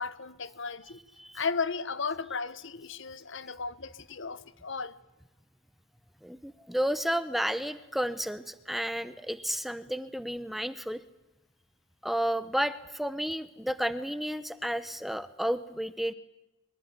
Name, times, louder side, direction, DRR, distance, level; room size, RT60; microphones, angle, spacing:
voice 1, 0.0-1.0 1.3-5.0, left 5 dB, 60° left, 1.1 m, -35 dB
voice 2, 6.2-11.0 12.0-16.1, equal, ahead, 0.8 m, -32 dB
23.5 x 22.0 x 9.6 m
head